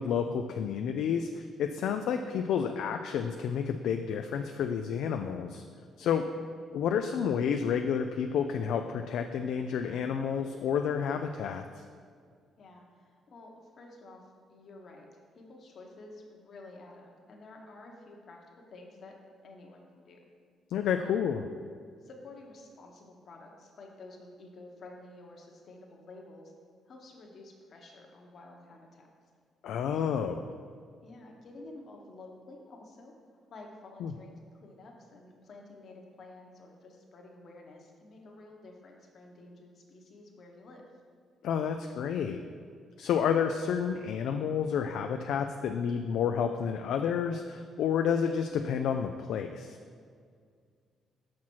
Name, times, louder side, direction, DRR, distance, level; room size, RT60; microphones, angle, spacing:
voice 1, 0.0-5.6 6.0-6.3 6.7-11.8 20.7-21.5 29.6-30.4 34.0-34.1 41.4-42.4 43.0-49.8, left 7 dB, 80° left, 6 dB, 0.3 m, -30 dB
voice 2, 6.0-6.4 12.6-19.2 19.4-20.2 21.0-21.3 22.0-26.5 26.8-29.1 29.9-30.1 31.0-33.1 33.5-40.9, left 2 dB, 55° left, 1 dB, 1.2 m, -51 dB
6.0 x 5.8 x 4.6 m, 2.1 s
cardioid pair, 90°, 0 cm